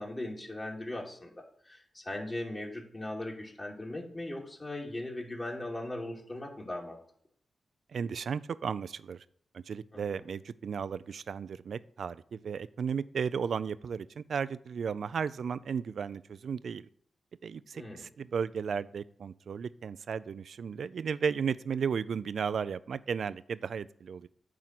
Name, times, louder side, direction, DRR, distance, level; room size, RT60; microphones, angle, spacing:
voice 1, 0.0-7.0 9.9-10.2 17.7-18.0, left 1 dB, 35° left, -2 dB, 2.5 m, -39 dB
voice 2, 7.9-9.2 9.5-16.8 17.4-24.3, right 6 dB, 75° right, 17 dB, 0.3 m, -34 dB
9.3 x 3.7 x 5.9 m, 0.64 s
cardioid pair, 50°, 0 cm